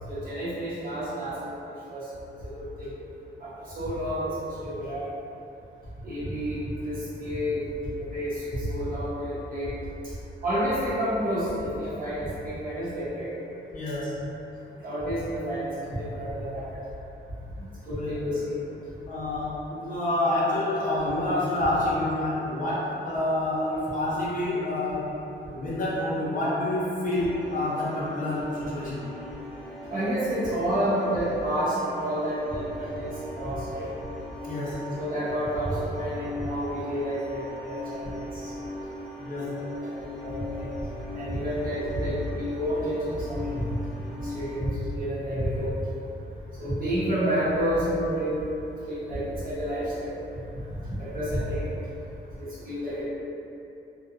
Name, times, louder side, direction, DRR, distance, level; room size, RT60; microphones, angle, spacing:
voice 1, 0.1-1.5 1.9-2.1 2.4-2.9 3.4-5.1 6.0-7.7 8.0-9.7 10.4-13.3 14.8-16.8 17.6-18.6 29.9-33.9 35.0-38.5 39.6-40.7 41.1-43.6 44.2-45.8 46.5-48.4 48.9-50.1 51.0-51.7 52.4-53.0, equal, 50° right, -11 dB, 0.9 m, -30 dB
voice 2, 13.7-14.3 17.8-18.4 19.1-25.1 25.5-29.0 34.4-34.9 39.2-39.7, left 1 dB, 45° left, -8 dB, 0.6 m, -28 dB
sound 1, 27.1-44.6, left 1 dB, 5° left, 0.4 m, -39 dB
2.7 x 2.2 x 2.4 m, 2.8 s
wide cardioid pair, 165°, 19 cm